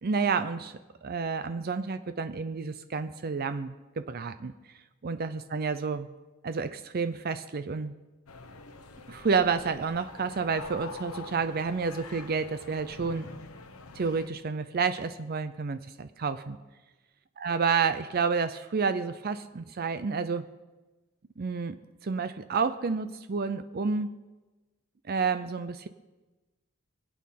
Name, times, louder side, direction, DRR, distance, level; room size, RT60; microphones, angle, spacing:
voice 1, 0.0-0.7 1.0-4.5 5.0-6.1 6.4-7.9 9.1-13.3 13.9-16.6 17.4-20.4 21.4-21.7 22.0-24.1 25.1-25.9, right 5 dB, 45° right, 11 dB, 0.5 m, -30 dB
sound 1, 8.3-14.3, left 3 dB, 90° left, 1.2 m, -45 dB
23.0 x 8.5 x 5.8 m, 1.2 s
head